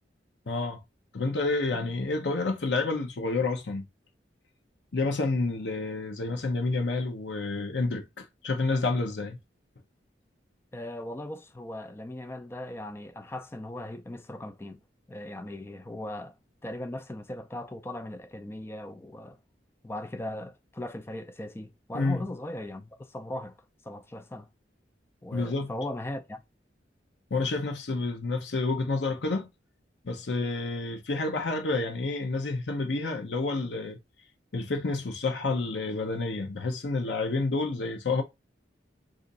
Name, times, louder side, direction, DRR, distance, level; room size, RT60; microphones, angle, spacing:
voice 1, 0.5-0.8 1.1-3.8 4.9-9.4 21.9-22.2 25.3-25.7 27.3-29.5 30.0-34.0 34.5-38.2, left 3 dB, 70° left, 0.7 m, -29 dB
voice 2, 10.7-14.8 15.1-16.4 16.6-19.4 19.8-23.6 23.8-24.5 25.2-26.4, left 1 dB, 15° left, 0.3 m, -38 dB
2.5 x 2.5 x 3.9 m
head